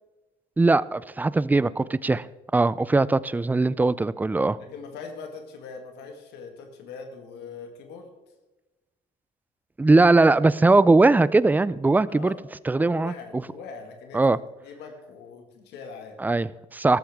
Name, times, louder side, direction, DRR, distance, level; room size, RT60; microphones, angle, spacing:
voice 1, 0.6-2.3 2.5-4.6 9.8-12.3 12.7-13.4 14.1-14.4 16.2-17.0, right 3 dB, 10° right, 18 dB, 0.3 m, -20 dB
voice 2, 4.6-8.1 12.1-12.4 12.7-16.2, left 5 dB, 80° left, 4 dB, 1.8 m, -41 dB
13.5 x 13.0 x 3.5 m, 1.1 s
cardioid pair, 110°, 17 cm